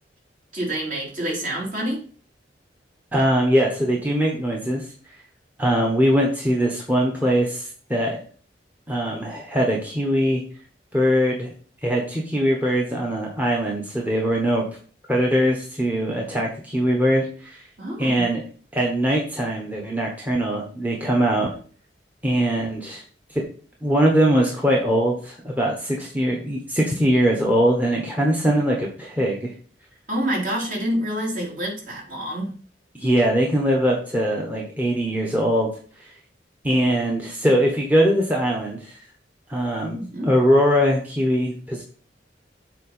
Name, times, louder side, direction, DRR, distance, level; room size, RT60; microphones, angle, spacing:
voice 1, 0.5-2.0 17.8-18.3 30.1-32.5 39.8-40.3, right 1 dB, 45° right, -3 dB, 3.4 m, -27 dB
voice 2, 3.1-4.8 5.6-8.2 8.9-10.4 10.9-11.5 11.8-14.6 15.1-17.6 18.0-18.4 18.7-21.5 22.2-23.0 23.3-23.4 23.8-29.5 32.9-35.7 36.6-39.0 39.5-40.0 40.2-41.8, equal, 10° right, -1 dB, 1.1 m, -21 dB
7.5 x 4.3 x 5.5 m, 0.43 s
head